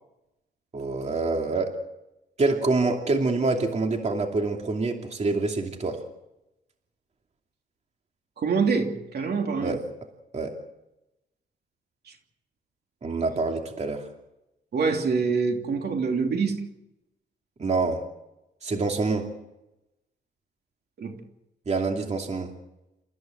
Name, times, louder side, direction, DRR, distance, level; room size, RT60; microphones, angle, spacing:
voice 1, 0.7-1.7 2.4-6.0 9.6-9.8 10.3-10.5 13.0-14.0 17.6-18.0 18.6-19.2 21.7-22.5, right 3 dB, 35° right, 3 dB, 2.7 m, -26 dB
voice 2, 8.4-9.8 14.7-16.6 21.0-21.2, right 5 dB, 60° right, 3 dB, 3.0 m, -25 dB
28.5 x 15.0 x 7.8 m, 0.91 s
cardioid pair, 120°, 19 cm